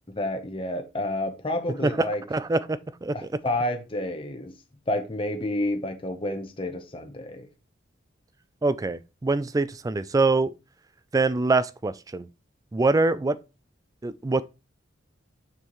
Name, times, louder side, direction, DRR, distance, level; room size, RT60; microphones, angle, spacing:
voice 1, 0.1-2.2 3.1-4.5 4.9-7.5, left 1 dB, 25° left, 0.9 m, -29 dB
voice 2, 2.3-3.1 8.6-10.5 11.1-12.3 12.7-13.4 14.0-14.4, right 3 dB, 20° right, 0.3 m, -24 dB
6.6 x 5.6 x 3.1 m
head